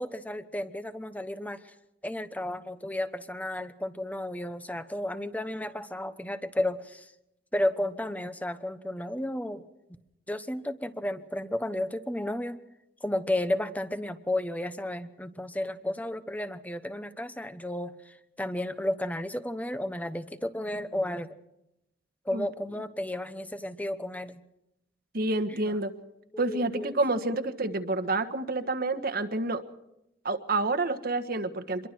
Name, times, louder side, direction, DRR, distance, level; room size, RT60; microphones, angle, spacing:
voice 1, 0.0-1.6 2.0-7.1 7.5-9.7 10.3-12.6 13.0-17.9 18.4-21.3 22.2-24.4 25.5-25.7 26.3-26.9, left 1 dB, 10° left, 11 dB, 1.1 m, -32 dB
voice 2, 25.1-25.9 26.4-29.6 30.2-31.9, right 2 dB, 55° right, 9 dB, 1.5 m, -28 dB
26.0 x 22.5 x 4.6 m, 0.85 s
head